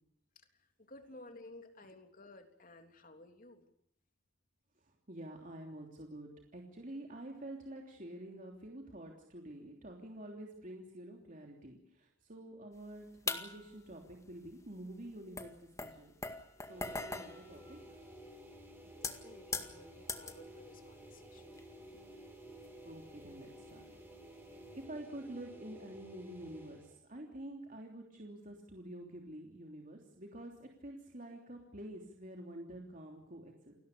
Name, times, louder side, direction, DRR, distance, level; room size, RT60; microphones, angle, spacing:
voice 1, 0.3-3.7 18.8-21.8, left 2 dB, 45° left, 6 dB, 3.4 m, -56 dB
voice 2, 4.8-16.1 16.7-17.8 22.8-23.8 24.5-33.7, right 1 dB, 45° right, 1 dB, 3.2 m, -48 dB
sound 1, 13.3-13.8 14.8-14.9 15.4-18.4 18.9-20.5 20.9-21.2 21.6-21.7 22.6-23.4 23.7-23.9 24.7-24.8, left 3 dB, 15° left, 1.9 m, -41 dB
sound 2, 16.6-27.0, equal, 10° right, 5.4 m, -54 dB
29.0 x 19.5 x 6.8 m, 0.72 s
head